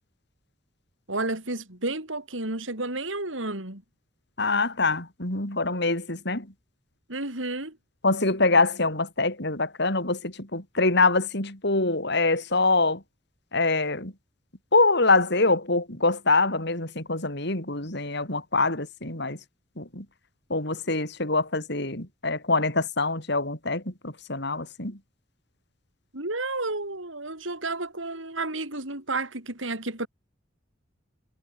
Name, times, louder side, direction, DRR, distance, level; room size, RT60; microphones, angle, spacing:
voice 1, 1.1-3.8 7.1-7.8 26.1-30.1, right 2 dB, 85° right, 6.8 m, -31 dB
voice 2, 4.4-6.5 8.0-13.0 13.5-14.1 14.7-19.4 19.8-20.0 20.5-25.0, left 3 dB, 60° left, 6.9 m, -24 dB
head